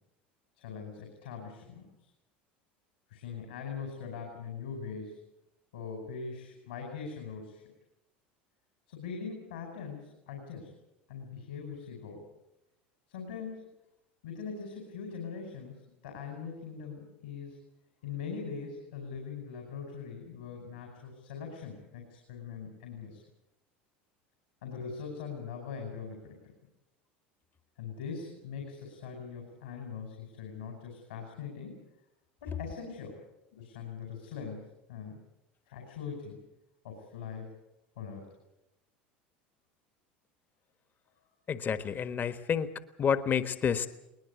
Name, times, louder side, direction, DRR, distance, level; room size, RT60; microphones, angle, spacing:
voice 1, 0.6-1.9 3.1-5.2 5.7-7.6 8.9-10.7 11.1-12.2 13.1-13.7 14.2-17.6 18.0-23.2 24.6-26.3 27.8-31.8 32.4-33.2 33.5-35.2 35.7-36.4 36.8-37.5 38.0-38.3, left 6 dB, 85° left, 3 dB, 5.2 m, -41 dB
voice 2, 41.5-42.7 43.0-43.9, left 7 dB, 35° left, 11 dB, 1.4 m, -29 dB
21.5 x 20.0 x 8.3 m, 0.91 s
hypercardioid pair, 85°, 5 cm